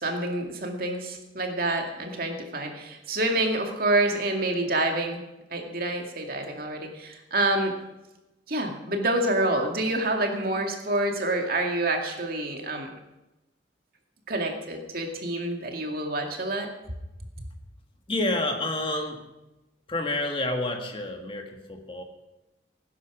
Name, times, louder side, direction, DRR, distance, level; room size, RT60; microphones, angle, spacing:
voice 1, 0.0-5.2 5.5-7.8 8.5-12.9 14.3-16.7, right 2 dB, 50° right, 3 dB, 2.2 m, -27 dB
voice 2, 18.1-19.2 19.9-22.0, left 2 dB, 30° left, 3 dB, 1.8 m, -29 dB
18.0 x 9.9 x 6.2 m, 0.98 s
head